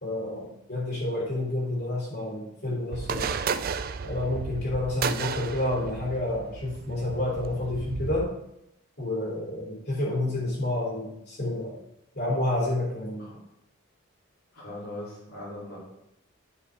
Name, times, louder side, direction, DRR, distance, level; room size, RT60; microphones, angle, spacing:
voice 1, 0.0-3.4 4.0-8.3 9.0-11.8 12.1-13.3, left 1 dB, 50° left, -3 dB, 3.5 m, -29 dB
sound 1, 2.9-8.2, right 6 dB, 40° right, 0.4 m, -33 dB
voice 2, 14.5-15.8, left 1 dB, 80° left, -9 dB, 3.9 m, -40 dB
11.0 x 5.8 x 3.8 m, 0.80 s
head